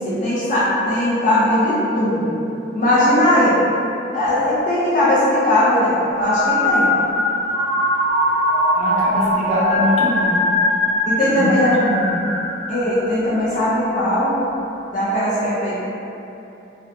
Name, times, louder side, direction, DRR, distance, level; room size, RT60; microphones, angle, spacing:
voice 1, 0.0-2.4 2.7-3.6 4.1-6.9 11.1-11.7 12.7-14.4 14.9-15.8, left 1 dB, 40° left, -10 dB, 0.4 m, -19 dB
sound 1, 6.1-13.4, left 1 dB, 60° left, 0.8 m, -20 dB
voice 2, 8.8-10.4 11.3-11.5 11.8-12.1, equal, 35° right, -6 dB, 0.4 m, -23 dB
2.7 x 2.1 x 2.5 m, 2.9 s
head